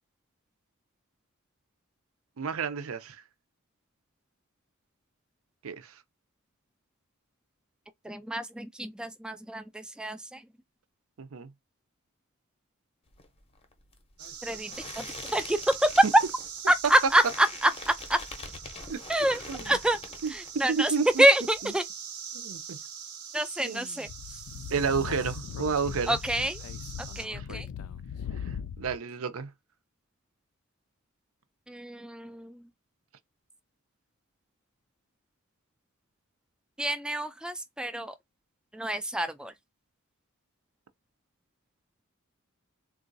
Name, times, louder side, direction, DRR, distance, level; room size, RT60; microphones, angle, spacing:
voice 1, 2.4-3.2 5.6-5.9 11.2-11.5 18.9-19.0 19.5-19.7 20.2-20.3 20.7-21.2 22.3-22.8 23.6-24.0 24.7-26.2 27.3-27.4 28.4-29.5, right 5 dB, 65° right, 0.5 m, -31 dB
voice 2, 8.0-10.4 14.4-16.1 16.7-18.2 19.1-20.0 20.3-21.8 23.3-24.4 26.1-26.6 27.2-27.7 31.7-32.7 36.8-38.1 38.7-39.5, right 1 dB, 5° right, 0.3 m, -27 dB
sound 1, 13.1-20.8 21.1-21.8, left 3 dB, 25° left, 0.7 m, -44 dB
sound 2, 14.2-27.3, right 7 dB, 90° right, 0.9 m, -43 dB
Speech / Wind, 24.1-29.0, left 8 dB, 85° left, 0.3 m, -39 dB
3.7 x 2.4 x 2.6 m
head